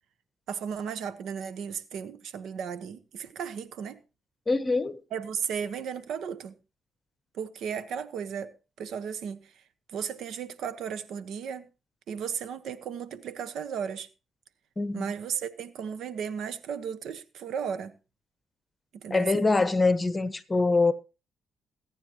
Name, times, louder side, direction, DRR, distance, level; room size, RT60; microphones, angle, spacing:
voice 1, 0.5-4.0 5.1-6.6 7.3-9.5 9.9-11.7 12.1-14.1 14.9-18.0 19.0-19.3, right 7 dB, 75° right, 1.1 m, -35 dB
voice 2, 4.5-5.0 14.8-15.0 19.1-20.9, left 3 dB, 20° left, 1.2 m, -24 dB
22.0 x 9.4 x 3.0 m
cardioid pair, 90°, 0 cm